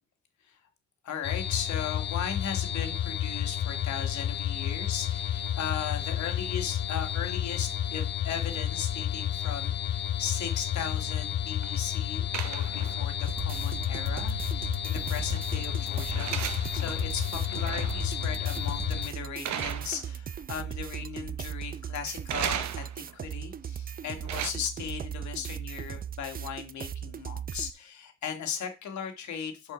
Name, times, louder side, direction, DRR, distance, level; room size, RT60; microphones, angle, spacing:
voice 1, 1.0-29.7, left 7 dB, 70° left, 5 dB, 1.9 m, -37 dB
sound 1, 1.2-19.1, left 10 dB, 35° left, 0.4 m, -31 dB
sound 2, 10.0-11.8 12.3-13.3 13.5-13.6 14.9-18.1 18.5-18.8 19.4-20.4 20.7-21.3 22.3-23.2 23.9-24.5, right 10 dB, 70° right, 0.8 m, -38 dB
sound 3, 13.3-27.7, right 8 dB, 30° right, 0.5 m, -38 dB
6.4 x 5.5 x 5.0 m, 0.29 s
cardioid pair, 90°, 30 cm